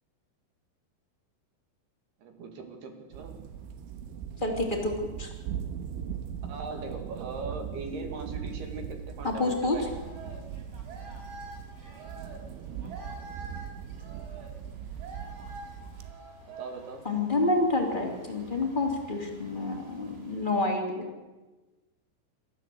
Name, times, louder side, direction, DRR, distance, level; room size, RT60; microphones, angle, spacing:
voice 1, 2.2-3.3 6.5-9.9 16.5-17.0, right 3 dB, 60° right, 4 dB, 3.7 m, -40 dB
sound 1, 3.1-16.1, right 8 dB, 75° right, 3.4 m, -40 dB
voice 2, 4.4-5.3 9.2-9.8 17.0-21.1, left 2 dB, 15° left, 2 dB, 2.2 m, -28 dB
sound 2, 9.5-20.6, right 1 dB, 25° right, 4.9 m, -48 dB
28.0 x 13.5 x 7.8 m, 1.2 s
omnidirectional pair, 5.9 m